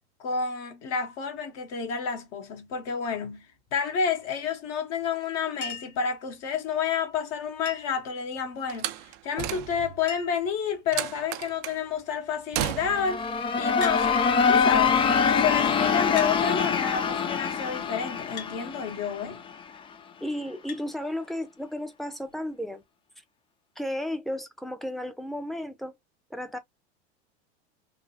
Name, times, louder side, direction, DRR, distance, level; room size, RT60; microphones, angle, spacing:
voice 1, 0.2-3.5 3.7-8.9 9.2-13.3 13.6-14.2 14.5-15.0 15.3-19.4, left 6 dB, 50° left, 1.1 m, -30 dB
Chink clink, 5.6-6.0 7.6-8.1 9.4-9.5 9.7-9.8 10.1-10.5 11.3-11.7 13.8-14.0 15.1-15.2 16.2-16.4 18.4-18.6 20.7-20.9 22.3-22.4, left 6 dB, 70° left, 1.5 m, -39 dB
Slam, 8.7-10.1 10.9-11.8 12.5-13.2, right 13 dB, 55° right, 0.5 m, -33 dB
sound 1, 12.8-19.6, left 6 dB, 15° left, 0.3 m, -24 dB
voice 2, 20.2-22.8 23.8-25.9 26.3-26.6, left 1 dB, ahead, 0.7 m, -33 dB
3.5 x 2.2 x 2.2 m
hypercardioid pair, 100°, 33 cm